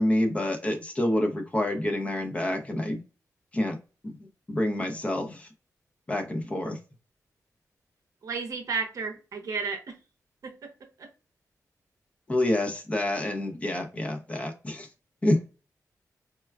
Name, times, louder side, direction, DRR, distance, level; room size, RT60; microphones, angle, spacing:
voice 1, 0.0-3.0 3.5-3.8 4.0-5.5 6.1-6.8 12.3-14.9 15.2-15.6, left 1 dB, 20° left, 0.6 m, -28 dB
voice 2, 8.2-10.0 10.4-10.7 11.0-11.1, right 5 dB, 65° right, 0.7 m, -33 dB
4.3 x 2.2 x 2.3 m
wide cardioid pair, 130°, 6 cm